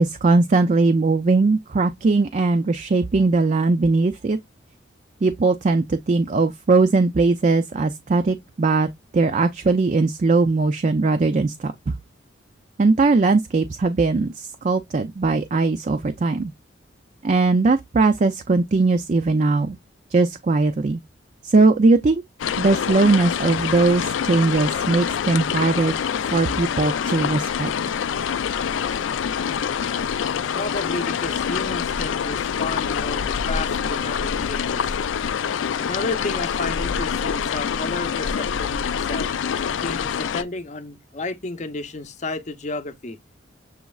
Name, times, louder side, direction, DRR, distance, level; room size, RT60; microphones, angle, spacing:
voice 1, 0.0-4.4 5.2-8.9 9.1-11.9 12.8-16.5 17.2-19.8 20.1-21.0 21.4-22.2 22.6-25.9 26.3-27.7, right 3 dB, 40° right, 0.4 m, -19 dB
sound 1, 22.4-40.4, left 7 dB, 80° left, 0.4 m, -25 dB
voice 2, 30.5-35.0 35.8-39.3 39.8-43.2, left 3 dB, 40° left, 0.7 m, -32 dB
7.0 x 3.1 x 2.3 m
head